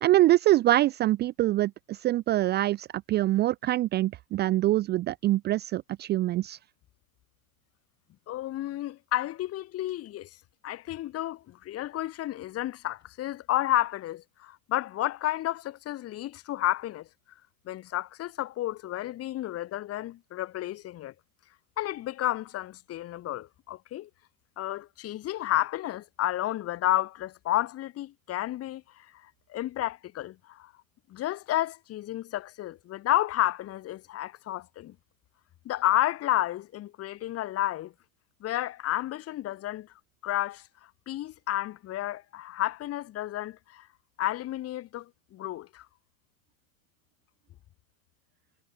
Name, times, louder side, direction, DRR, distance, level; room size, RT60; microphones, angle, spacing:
voice 1, 0.0-6.6, right 15 dB, 25° right, 0.6 m, -24 dB
voice 2, 8.3-10.3 10.6-17.1 17.6-21.1 21.8-24.1 24.6-30.7 31.1-34.9 35.6-37.9 38.4-39.9 40.2-40.6 41.1-43.9 44.2-45.9, left 14 dB, 35° left, 4.8 m, -31 dB
hypercardioid pair, 105°, 40 cm